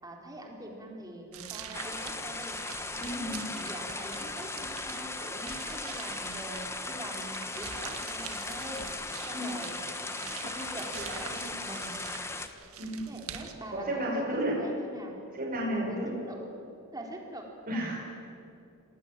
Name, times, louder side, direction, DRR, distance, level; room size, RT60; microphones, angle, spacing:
voice 1, 0.0-2.6 3.1-8.9 9.3-9.8 10.1-12.0 13.1-15.2 15.9-16.5 16.9-17.9, right 1 dB, 15° right, 0 dB, 4.0 m, -44 dB
sound 1, 1.3-13.5, right 7 dB, 75° right, 2.0 m, -45 dB
sound 2, 1.7-12.5, left 3 dB, 10° left, 1.2 m, -38 dB
voice 2, 3.0-3.4 9.3-9.5 12.8-13.1 13.7-14.6 15.3-16.1 17.7-17.9, right 1 dB, 40° right, -6 dB, 6.3 m, -32 dB
28.0 x 19.5 x 9.1 m, 2.6 s
head